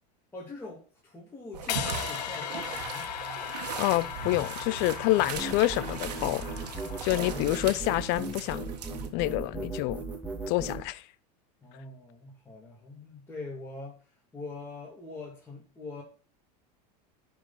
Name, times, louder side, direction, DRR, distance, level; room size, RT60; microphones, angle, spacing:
voice 1, 0.3-3.1 4.6-5.3 7.1-7.8 11.6-14.0 14.3-16.0, left 3 dB, 10° left, 2.7 m, -43 dB
sound 1, 1.5-9.1, right 7 dB, 90° right, 1.5 m, -39 dB
sound 2, 1.7-7.8, left 11 dB, 85° left, 0.9 m, -38 dB
voice 2, 3.8-6.4 7.0-8.7 9.1-10.0 10.5-11.0, left 18 dB, 55° left, 0.6 m, -27 dB
sound 3, 5.3-10.8, right 3 dB, 5° right, 2.1 m, -37 dB
10.5 x 5.1 x 4.1 m
supercardioid pair, 115°, 20 cm